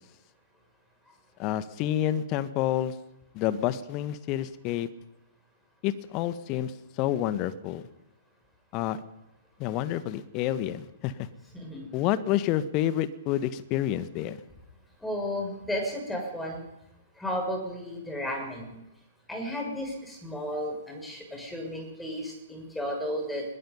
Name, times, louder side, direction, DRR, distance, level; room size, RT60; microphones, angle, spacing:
voice 1, 1.4-2.9 3.3-4.9 5.8-7.8 8.7-9.0 9.6-11.3 11.9-14.4, left 12 dB, 30° left, 13 dB, 1.4 m, -29 dB
voice 2, 11.5-11.9 15.0-16.7 17.2-18.8 19.3-23.4, equal, 5° left, 1 dB, 6.8 m, -33 dB
22.5 x 21.0 x 5.6 m, 0.88 s
figure-of-eight pair, 115°, 0 cm